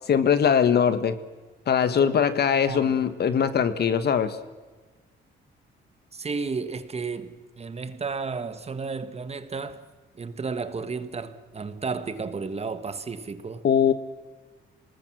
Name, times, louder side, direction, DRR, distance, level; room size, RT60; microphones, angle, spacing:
voice 1, 0.1-1.2 1.7-4.4 13.6-13.9, left 7 dB, 55° left, 1.4 m, -21 dB
voice 2, 2.6-3.1 6.1-9.8 10.1-13.6, right 4 dB, 30° right, 1.5 m, -33 dB
26.0 x 20.0 x 6.2 m
cardioid pair, 90°, 20 cm